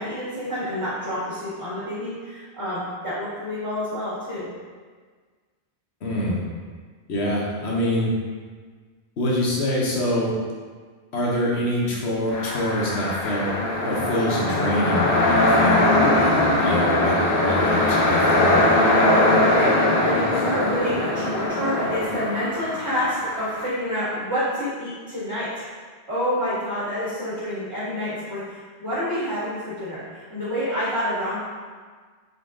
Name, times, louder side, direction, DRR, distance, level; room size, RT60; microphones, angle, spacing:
voice 1, 0.0-4.5 19.3-25.7 26.1-31.4, equal, 15° right, -12 dB, 1.6 m, -28 dB
voice 2, 6.0-6.4 7.1-8.1 9.2-10.3 11.1-13.5 13.8-18.6, left 1 dB, 80° left, -4 dB, 1.2 m, -25 dB
sound 1, 12.3-23.7, left 1 dB, 60° left, 0.8 m, -21 dB
3.9 x 3.7 x 3.7 m, 1.5 s
omnidirectional pair, 1.1 m